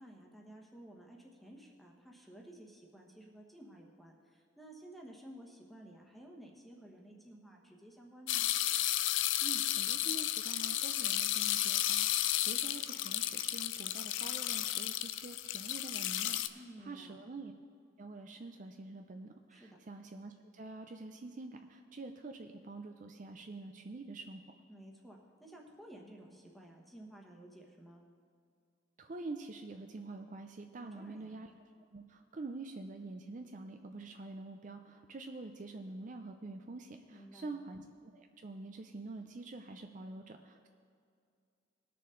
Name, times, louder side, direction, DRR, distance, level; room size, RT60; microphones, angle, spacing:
voice 1, 0.0-8.5 16.5-17.2 19.5-19.8 24.7-28.0 30.8-31.4 37.1-37.6, right 1 dB, ahead, -1 dB, 1.2 m, -54 dB
sound 1, 8.3-16.5, left 13 dB, 70° left, 0.4 m, -33 dB
voice 2, 9.4-17.5 18.0-24.4 29.0-31.5 31.9-37.8 38.1-40.7, right 3 dB, 40° right, 5 dB, 0.4 m, -46 dB
19.5 x 6.8 x 3.8 m, 2.3 s
head